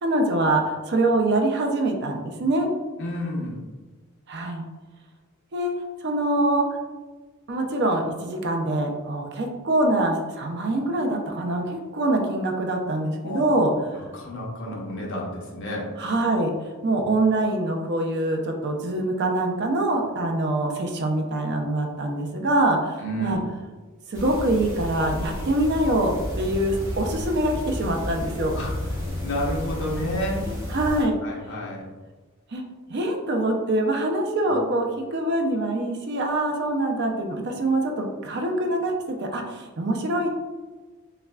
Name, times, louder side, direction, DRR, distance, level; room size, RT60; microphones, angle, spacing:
voice 1, 0.0-2.7 4.3-4.6 5.5-5.7 6.0-6.7 7.5-13.7 16.0-23.4 24.1-28.6 30.7-31.2 32.5-32.6 32.9-38.9 39.2-40.3, right 1 dB, 50° right, 3 dB, 0.5 m, -24 dB
voice 2, 3.0-3.6 13.2-13.5 13.9-15.9 23.0-23.4 28.5-30.6 30.9-31.9 34.4-34.6, equal, 60° left, -3 dB, 0.9 m, -31 dB
sound 1, 24.1-31.0, left 1 dB, 15° right, 1.0 m, -32 dB
5.4 x 2.3 x 2.3 m, 1.3 s
head